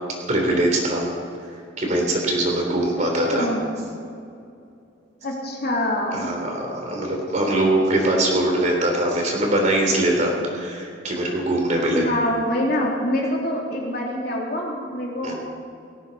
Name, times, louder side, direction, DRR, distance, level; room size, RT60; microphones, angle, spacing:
voice 1, 0.3-1.1 1.8-3.5 6.1-12.0 15.2-15.3, right 1 dB, 40° right, 0 dB, 3.5 m, -22 dB
voice 2, 3.3-3.6 5.2-6.3 11.9-15.3, left 1 dB, 55° left, -2 dB, 3.1 m, -25 dB
18.5 x 17.0 x 4.2 m, 2.5 s
head